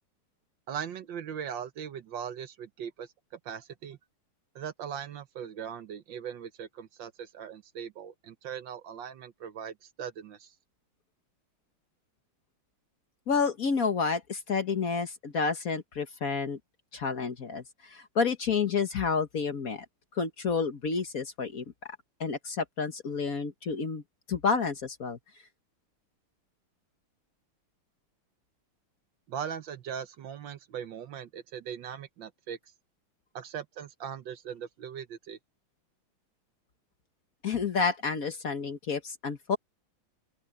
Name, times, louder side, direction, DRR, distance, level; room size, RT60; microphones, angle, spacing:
voice 1, 0.7-3.1 3.4-4.0 4.5-10.5 29.3-32.6 33.3-35.4, right 8 dB, 65° right, 1.6 m, -39 dB
voice 2, 13.3-16.6 16.9-19.8 20.2-21.6 22.2-24.0 24.3-25.2 37.4-39.6, left 5 dB, 45° left, 1.4 m, -30 dB
open air
omnidirectional pair, 2.3 m